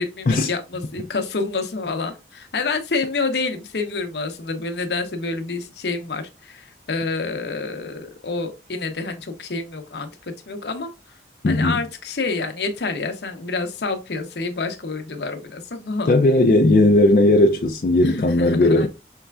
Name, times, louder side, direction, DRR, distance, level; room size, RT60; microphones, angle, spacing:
voice 1, 0.0-10.9 11.4-16.1 18.0-18.9, left 3 dB, 75° left, 0.7 m, -28 dB
voice 2, 11.4-11.8 16.1-18.9, left 2 dB, 50° left, 0.4 m, -16 dB
5.5 x 3.2 x 2.3 m
head